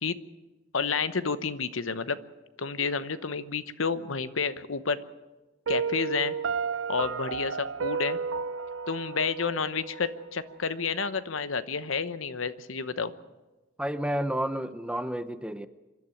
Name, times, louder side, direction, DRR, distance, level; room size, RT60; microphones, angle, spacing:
voice 1, 0.7-2.2 2.6-5.0 5.7-6.3 6.9-8.2 8.9-13.1, left 5 dB, 80° left, 13 dB, 1.0 m, -30 dB
Piano, 5.7-10.6, right 5 dB, 80° right, 0.6 m, -32 dB
voice 2, 13.8-15.7, equal, 5° right, 11 dB, 0.7 m, -30 dB
26.0 x 12.0 x 9.2 m, 1.1 s
head